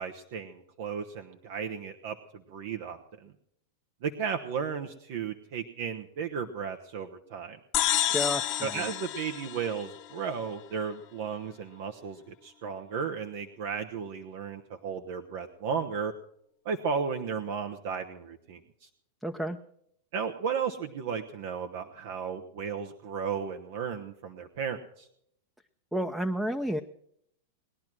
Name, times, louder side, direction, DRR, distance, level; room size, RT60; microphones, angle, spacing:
voice 1, 0.0-3.3 4.0-7.6 8.6-16.1 16.6-18.9 20.1-25.1, right 6 dB, 60° right, 5 dB, 1.1 m, -34 dB
sound 1, 7.7-10.3, left 13 dB, 45° left, 1.1 m, -29 dB
voice 2, 8.1-8.9 19.2-19.6 25.9-26.8, equal, 5° right, 8 dB, 0.7 m, -31 dB
20.0 x 11.0 x 6.2 m, 0.73 s
hypercardioid pair, 105°, 0 cm